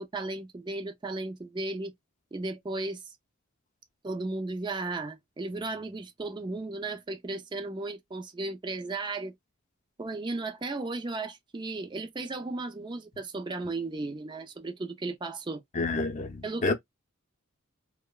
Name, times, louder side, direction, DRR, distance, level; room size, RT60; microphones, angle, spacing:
voice 1, 0.0-1.9 2.3-3.1 4.0-9.3 10.0-15.6 16.4-16.7, right 2 dB, 20° right, 0.4 m, -35 dB
voice 2, 15.7-16.7, left 3 dB, 35° left, 0.6 m, -29 dB
2.9 x 2.1 x 2.3 m
head